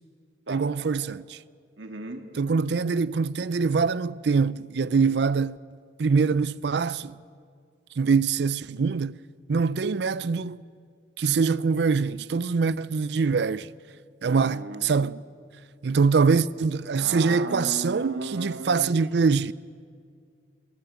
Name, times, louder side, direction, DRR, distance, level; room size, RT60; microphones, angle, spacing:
voice 1, 0.5-1.4 2.4-5.6 6.0-7.2 8.0-9.2 9.5-10.6 11.2-13.7 14.2-15.2 15.8-19.5, right 5 dB, 70° right, 0.4 m, -24 dB
voice 2, 1.8-2.3 14.3-14.8 16.9-18.9, right 2 dB, 90° right, 2.0 m, -35 dB
25.0 x 14.0 x 8.2 m
head